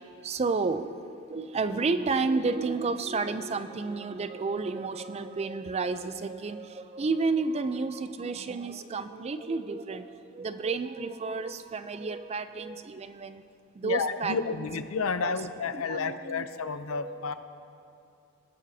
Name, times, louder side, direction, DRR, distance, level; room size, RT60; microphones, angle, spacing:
voice 1, 0.2-1.0 1.3-13.4 13.7-14.7 15.2-15.4 15.7-17.3, right 4 dB, 30° right, 11 dB, 0.4 m, -31 dB
voice 2, 13.8-17.3, left 5 dB, 85° left, 11 dB, 0.6 m, -31 dB
21.5 x 9.4 x 2.7 m, 2.6 s
head